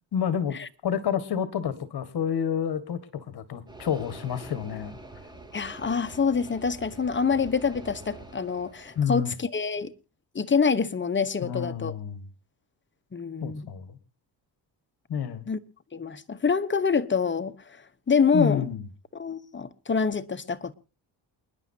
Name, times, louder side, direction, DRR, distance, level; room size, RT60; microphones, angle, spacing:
voice 1, 0.1-0.6 0.8-5.0 9.0-9.3 11.4-12.3 13.4-14.0 15.1-15.5 18.3-18.9, left 8 dB, 60° left, 1.8 m, -29 dB
sound 1, 3.7-9.1, right 2 dB, 10° right, 2.7 m, -45 dB
voice 2, 5.5-9.9 10.3-11.9 13.1-13.6 15.5-15.6 15.9-17.5 18.1-18.7 19.1-20.7, left 5 dB, 25° left, 1.0 m, -26 dB
29.0 x 10.5 x 2.7 m
cardioid pair, 105°, 43 cm